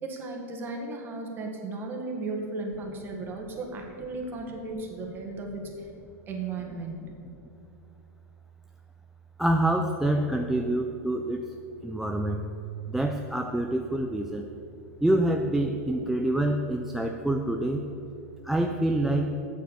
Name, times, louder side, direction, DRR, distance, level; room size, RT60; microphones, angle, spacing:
voice 1, 0.0-5.9 6.3-7.1, right 3 dB, 25° right, 1 dB, 1.5 m, -35 dB
voice 2, 9.4-12.5 12.9-14.5 15.0-17.9 18.4-19.4, right 1 dB, 5° right, 3 dB, 0.4 m, -26 dB
8.1 x 7.1 x 6.8 m, 2.7 s
supercardioid pair, 145°, 9 cm